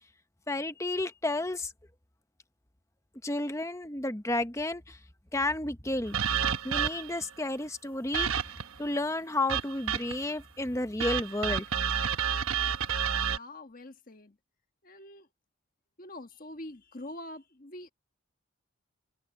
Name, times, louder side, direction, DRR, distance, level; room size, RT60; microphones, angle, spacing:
voice 1, 0.5-1.7 3.2-5.0 5.3-6.2 6.6-8.3 8.8-11.6, left 2 dB, 15° left, 0.9 m, -31 dB
sound 1, 6.1-7.2 8.1-8.8 9.5-10.3 11.0-13.4, right 8 dB, 85° right, 1.1 m, -30 dB
voice 2, 13.3-14.4 14.8-15.3 16.0-17.9, left 1 dB, 40° left, 1.4 m, -45 dB
head